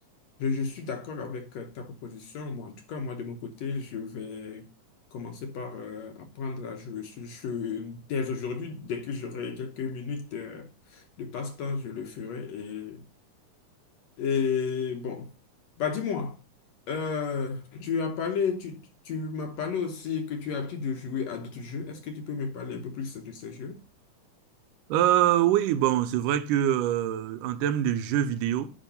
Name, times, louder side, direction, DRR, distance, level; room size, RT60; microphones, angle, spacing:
voice 1, 0.4-4.7 5.1-13.0 14.2-15.3 15.8-16.4 16.9-23.8, left 5 dB, 65° left, 1.9 m, -33 dB
voice 2, 24.9-28.7, right 11 dB, 85° right, 2.3 m, -24 dB
10.0 x 3.6 x 6.7 m
omnidirectional pair, 3.7 m